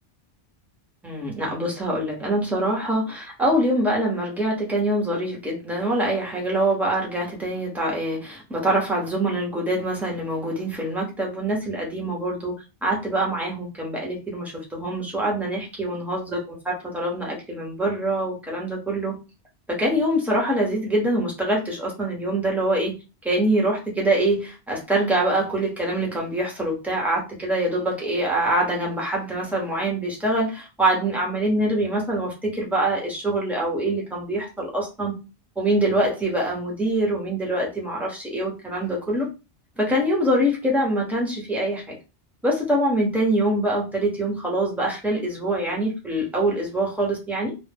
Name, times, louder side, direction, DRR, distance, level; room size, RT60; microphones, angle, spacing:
voice 1, 1.0-12.5 12.8-19.2 19.7-23.0 23.2-35.2 35.6-39.3 39.8-42.0 42.4-47.5, right 1 dB, ahead, -2 dB, 0.7 m, -24 dB
2.1 x 2.0 x 3.3 m, 0.29 s
omnidirectional pair, 1.1 m